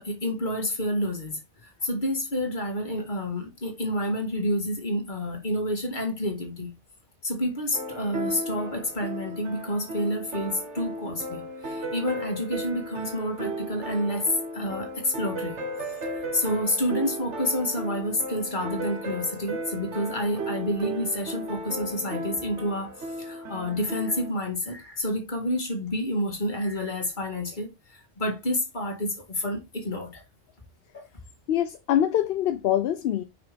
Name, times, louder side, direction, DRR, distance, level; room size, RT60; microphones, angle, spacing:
voice 1, 0.0-6.7 7.2-30.2 30.9-31.1, left 1 dB, 45° left, 2.0 m, -29 dB
sound 1, 7.7-24.3, right 1 dB, 80° right, 1.4 m, -35 dB
voice 2, 31.5-33.2, left 11 dB, 65° left, 0.7 m, -24 dB
5.8 x 5.0 x 3.4 m
omnidirectional pair, 1.2 m